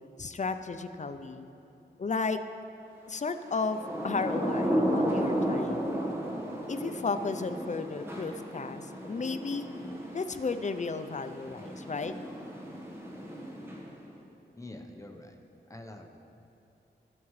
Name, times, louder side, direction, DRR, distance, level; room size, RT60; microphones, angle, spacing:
voice 1, 0.2-1.5 2.0-2.4 3.1-5.9 6.7-9.7 10.1-12.1, left 4 dB, 40° left, 9 dB, 0.5 m, -34 dB
Thunder / Rain, 3.6-14.1, equal, 15° right, 1.4 m, -34 dB
voice 2, 14.6-15.4 15.7-16.2, left 1 dB, 15° left, 2 dB, 0.9 m, -45 dB
20.0 x 6.9 x 3.2 m, 2.9 s
wide cardioid pair, 110°, 19 cm